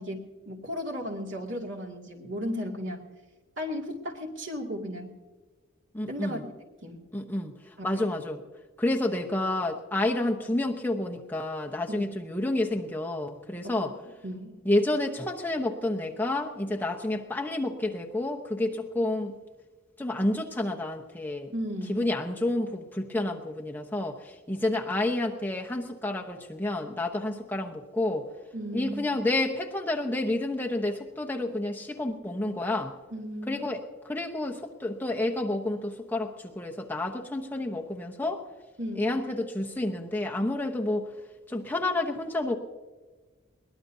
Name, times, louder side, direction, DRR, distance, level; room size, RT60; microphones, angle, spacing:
voice 1, 0.0-3.1 3.6-5.1 6.1-6.5 6.8-7.0 7.8-8.1 11.9-12.1 13.6-13.9 14.2-14.5 21.5-22.1 28.5-29.2 33.1-33.6 38.8-39.1, equal, 65° right, 1 dB, 2.4 m, -35 dB
voice 2, 5.9-6.4 7.1-7.5 7.8-8.4 8.8-13.9 14.6-19.3 20.0-21.5 21.9-28.3 28.7-32.9 33.5-38.4 39.0-41.1 41.5-42.6, left 2 dB, 10° left, 1 dB, 0.9 m, -29 dB
22.0 x 19.5 x 2.7 m, 1.3 s
head